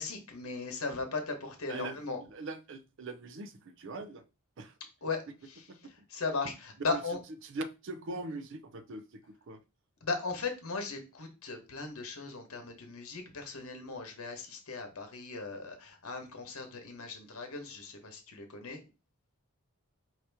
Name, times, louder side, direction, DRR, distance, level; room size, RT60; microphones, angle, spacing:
voice 1, 0.0-2.2 5.0-5.2 5.5-5.6 6.1-7.2 10.0-18.8, left 4 dB, 70° left, 1.1 m, -37 dB
voice 2, 1.7-4.2 4.6-4.7 5.7-5.9 6.9-7.0 7.4-9.6, right 2 dB, 55° right, 0.5 m, -41 dB
4.8 x 2.8 x 3.5 m
head